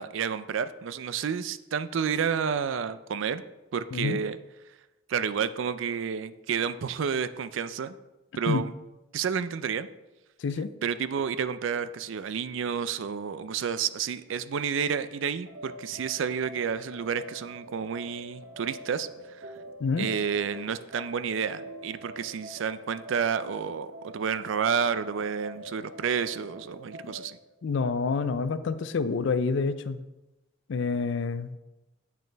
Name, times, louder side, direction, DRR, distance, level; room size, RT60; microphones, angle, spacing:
voice 1, 0.0-3.4 3.7-4.4 5.1-8.0 8.4-8.7 9.1-9.9 10.8-19.1 19.4-19.5 20.0-27.4, right 7 dB, 70° right, 13 dB, 0.4 m, -30 dB
voice 2, 10.4-10.7 19.8-20.1 27.0-27.1 27.6-30.1 30.7-31.6, left 4 dB, 60° left, 13 dB, 0.4 m, -28 dB
sound 1, 15.5-27.3, right 1 dB, 85° right, 0.8 m, -45 dB
8.3 x 6.5 x 3.4 m, 1.0 s
head